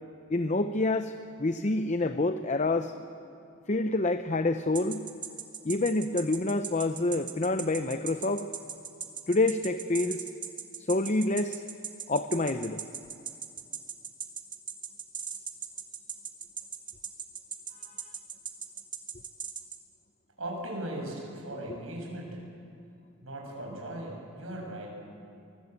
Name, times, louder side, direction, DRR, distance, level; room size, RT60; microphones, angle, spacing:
voice 1, 0.3-1.1 1.4-2.9 3.7-5.1 5.6-8.5 9.3-10.2 10.8-11.6 12.1-12.8 21.7-21.8, left 2 dB, 35° left, 9 dB, 0.7 m, -27 dB
sound 1, 4.7-19.8, right 7 dB, 20° right, 1.6 m, -38 dB
voice 2, 20.4-22.4 23.2-24.9, right 1 dB, 80° right, 0 dB, 7.5 m, -38 dB
24.5 x 23.5 x 8.3 m, 2.5 s
head